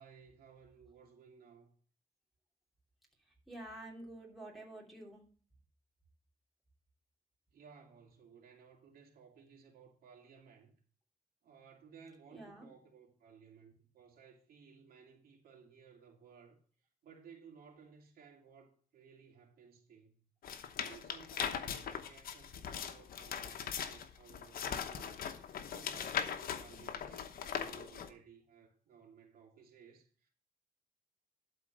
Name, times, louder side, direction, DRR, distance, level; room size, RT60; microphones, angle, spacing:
voice 1, 0.0-1.7 7.5-10.7 11.4-16.6 17.0-20.2 20.8-30.3, right 6 dB, 85° right, 2.8 m, -58 dB
voice 2, 3.2-5.2 12.3-12.7, right 1 dB, ahead, 3.1 m, -49 dB
sound 1, 20.4-28.1, left 8 dB, 75° left, 1.0 m, -40 dB
12.0 x 4.4 x 6.5 m
cardioid pair, 115°, 15 cm